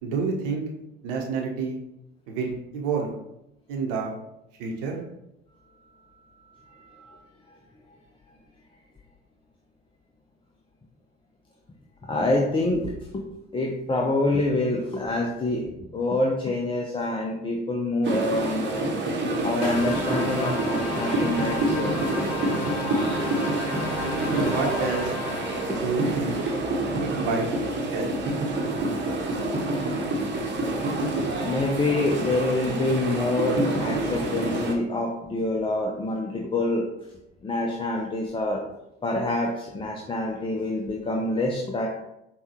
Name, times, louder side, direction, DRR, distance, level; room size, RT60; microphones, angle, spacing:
voice 1, 0.0-0.7 1.0-1.8 2.3-3.1 3.7-4.1 4.6-5.0 24.3-25.1 25.7-26.4 27.0-27.5 27.9-28.2, right 4 dB, 70° right, 1 dB, 0.8 m, -28 dB
voice 2, 6.3-7.2 7.5-7.6 12.1-13.2 13.5-18.9 19.4-22.3 23.0-23.1 25.7-25.8 26.4-26.5 29.7-29.8 31.0-31.1 31.4-36.9 37.4-38.6 39.0-41.9, left 2 dB, 20° left, -1 dB, 0.5 m, -26 dB
sound 1, 18.0-34.7, right 2 dB, 40° right, 0.9 m, -27 dB
sound 2, 19.6-26.1, left 3 dB, 85° left, 0.6 m, -34 dB
5.4 x 2.3 x 2.9 m, 0.85 s
hypercardioid pair, 60°, 29 cm